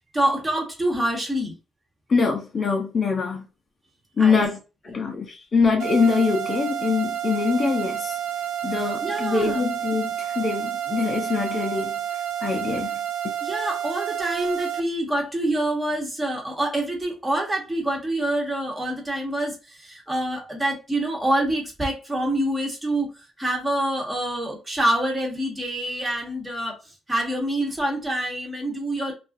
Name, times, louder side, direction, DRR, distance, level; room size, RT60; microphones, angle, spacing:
voice 1, 0.0-1.5 4.2-4.4 4.9-5.1 8.8-9.6 13.4-26.8 27.1-29.1, right 1 dB, 20° right, 1.2 m, -26 dB
voice 2, 2.1-3.4 4.2-4.6 4.8-8.2 8.6-12.0 12.4-13.0, left 5 dB, 40° left, 0.6 m, -23 dB
sound 1, 5.8-14.8, right 10 dB, 75° right, 0.4 m, -29 dB
2.4 x 2.3 x 2.5 m
cardioid pair, 90°, 0 cm